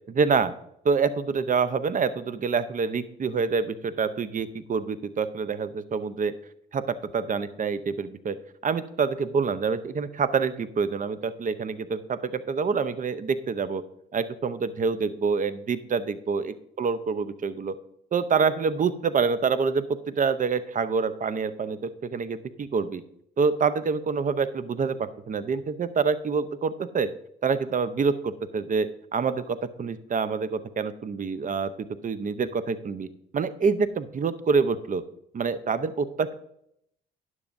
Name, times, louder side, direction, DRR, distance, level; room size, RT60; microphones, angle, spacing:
voice 1, 0.1-0.5 0.8-6.3 6.7-8.4 8.6-13.8 14.1-17.7 18.1-23.0 23.4-27.1 27.4-33.1 33.3-35.0 35.3-36.3, right 5 dB, 40° right, 13 dB, 0.7 m, -26 dB
12.0 x 9.8 x 2.6 m, 0.74 s
cardioid pair, 80°, 20 cm